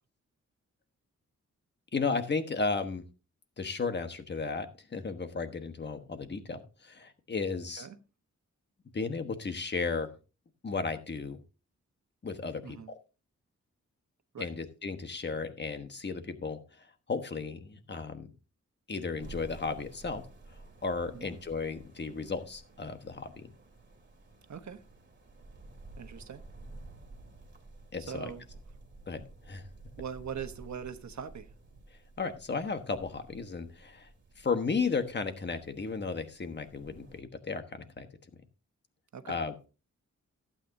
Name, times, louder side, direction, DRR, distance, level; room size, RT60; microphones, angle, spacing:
voice 1, 1.9-3.0 3.6-7.9 8.9-10.1 10.6-11.4 12.2-13.0 14.4-18.3 18.9-20.2 20.8-23.5 27.9-28.3 29.1-29.7 32.2-34.1 34.4-38.1 39.3-39.5, left 4 dB, 35° left, 1.3 m, -34 dB
sound 1, 19.2-37.2, right 2 dB, 40° right, 2.2 m, -52 dB
voice 2, 26.0-26.4 28.1-28.4 30.0-31.5 39.1-39.4, right 7 dB, 70° right, 1.2 m, -41 dB
15.5 x 8.6 x 2.7 m
wide cardioid pair, 170°, 29 cm